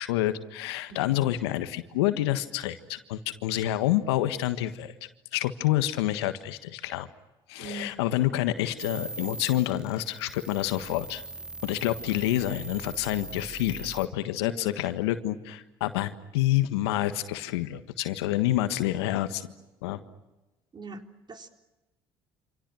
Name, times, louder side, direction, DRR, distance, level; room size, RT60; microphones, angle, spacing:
voice 1, 0.0-4.9 5.3-7.1 7.5-11.2 11.6-19.4 19.8-20.0, left 14 dB, 80° left, 11 dB, 1.5 m, -28 dB
voice 2, 7.6-7.9 14.4-14.8 20.7-21.5, right 3 dB, 35° right, 4 dB, 4.0 m, -41 dB
sound 1, 8.8-14.1, right 2 dB, 5° right, 1.0 m, -41 dB
28.5 x 27.0 x 6.3 m, 1.0 s
hypercardioid pair, 60°, 13 cm